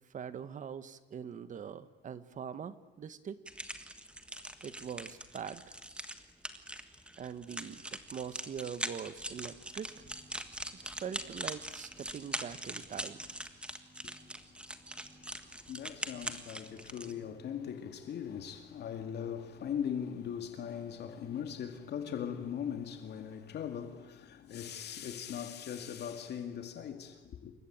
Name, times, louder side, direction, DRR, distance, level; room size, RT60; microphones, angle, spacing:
voice 1, 0.1-3.4 4.6-5.8 7.2-10.0 11.0-13.2, right 7 dB, 45° right, 1.5 m, -43 dB
sound 1, 3.5-17.1, right 1 dB, 5° right, 1.6 m, -42 dB
sound 2, 8.7-18.3, equal, 10° left, 6.3 m, -63 dB
voice 2, 15.4-27.5, left 8 dB, 65° left, 2.3 m, -40 dB
28.0 x 24.0 x 8.8 m
cardioid pair, 155°, 18 cm